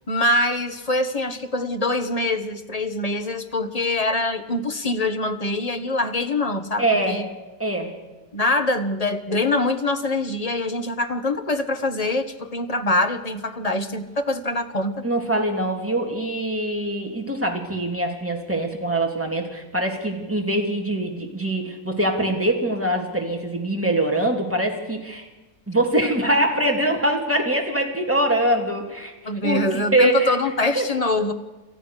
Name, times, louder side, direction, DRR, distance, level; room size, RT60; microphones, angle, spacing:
voice 1, 0.1-7.2 8.3-15.0 29.2-31.3, left 2 dB, 30° left, 8 dB, 1.3 m, -24 dB
voice 2, 6.8-7.3 7.6-7.9 15.0-25.3 25.7-29.1 29.4-30.3 30.7-30.9, right 1 dB, 10° right, 1 dB, 3.2 m, -23 dB
28.0 x 14.0 x 6.7 m, 1.2 s
omnidirectional pair, 1.5 m